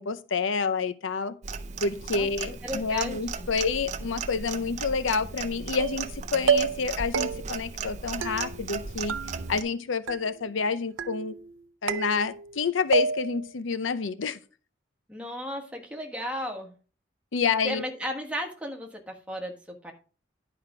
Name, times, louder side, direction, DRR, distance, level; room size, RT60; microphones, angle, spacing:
voice 1, 0.0-1.4 1.8-9.2 9.5-11.3 11.8-14.4 17.3-17.8, left 5 dB, 80° left, 0.6 m, -28 dB
Clock, 1.4-9.6, right 5 dB, 35° right, 0.6 m, -36 dB
voice 2, 2.1-3.5 15.1-16.7 17.6-19.9, equal, 5° right, 1.4 m, -35 dB
sound 1, 5.8-6.1 6.5-6.9 7.1-7.7 8.2-8.8 9.1-9.8 10.1-10.6 11.0-11.5 11.9-12.6 12.9-13.5, right 5 dB, 85° right, 0.5 m, -29 dB
10.5 x 5.0 x 4.8 m
head